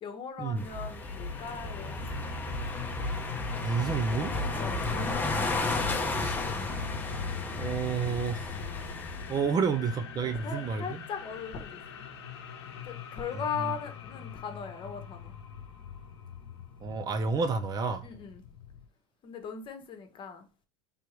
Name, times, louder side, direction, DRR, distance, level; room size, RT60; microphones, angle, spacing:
voice 1, 0.0-2.1 4.5-5.5 10.2-11.8 12.8-15.3 18.0-18.4 19.2-20.5, left 6 dB, 40° left, 1.1 m, -39 dB
sound 1, 0.6-9.4, left 2 dB, 15° left, 0.8 m, -33 dB
sound 2, 0.9-18.9, left 9 dB, 85° left, 0.7 m, -43 dB
voice 2, 3.6-4.3 6.2-6.4 7.5-8.6 9.3-11.0 13.6-13.7 16.8-18.1, right 5 dB, 30° right, 0.6 m, -30 dB
4.5 x 3.5 x 3.1 m
supercardioid pair, 100°, 13 cm